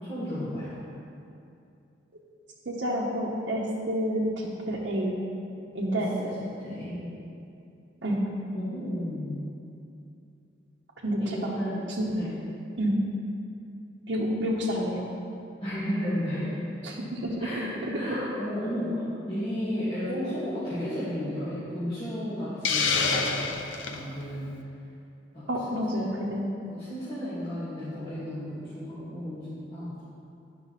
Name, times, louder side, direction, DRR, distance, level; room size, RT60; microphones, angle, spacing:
voice 1, 0.0-0.7 5.9-7.1 8.5-9.4 11.2-11.8 12.1-12.3 15.6-16.5 17.4-23.3 23.9-24.6 25.3-26.3 26.7-30.0, equal, 30° left, -15 dB, 2.2 m, -33 dB
voice 2, 2.7-5.1 5.7-6.1 8.0-8.2 11.0-11.6 12.0-12.1 12.8-13.0 14.1-15.1 16.8-17.3 18.0-18.1 25.5-26.4, equal, 65° right, -5 dB, 0.9 m, -29 dB
Hiss, 22.6-24.0, left 4 dB, 85° left, 0.7 m, -26 dB
10.5 x 5.8 x 4.1 m, 2.6 s
head